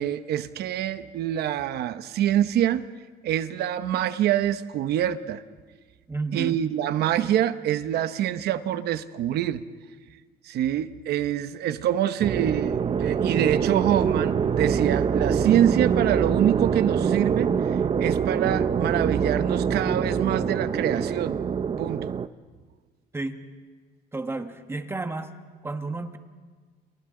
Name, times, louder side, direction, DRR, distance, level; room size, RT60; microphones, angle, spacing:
voice 1, 0.0-2.8 3.2-5.4 6.3-9.6 10.4-21.4 21.8-22.1, right 11 dB, 70° right, 12 dB, 1.0 m, -25 dB
voice 2, 6.1-6.6 23.1-23.4 24.1-25.3 25.6-26.2, right 3 dB, 15° right, 7 dB, 1.3 m, -31 dB
sound 1, 12.2-22.3, right 7 dB, 35° right, 0.7 m, -25 dB
29.5 x 29.0 x 3.8 m, 1.5 s
cardioid pair, 110°, 17 cm